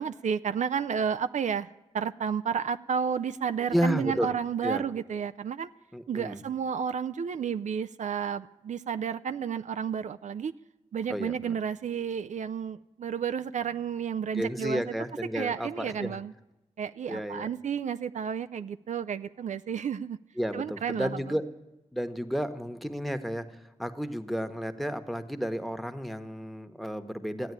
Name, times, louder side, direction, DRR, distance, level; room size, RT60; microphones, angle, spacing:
voice 1, 0.0-1.7 1.9-5.7 6.1-10.5 10.9-14.9 15.3-16.3 16.8-20.2 20.5-21.4, right 7 dB, 70° right, 10 dB, 0.4 m, -31 dB
voice 2, 3.7-4.3 4.6-4.8 5.9-6.4 11.1-11.6 14.3-16.2 17.1-17.5 20.4-21.5 21.9-27.5, equal, ahead, 9 dB, 1.2 m, -32 dB
14.0 x 8.7 x 9.6 m, 0.97 s
cardioid pair, 50°, 13 cm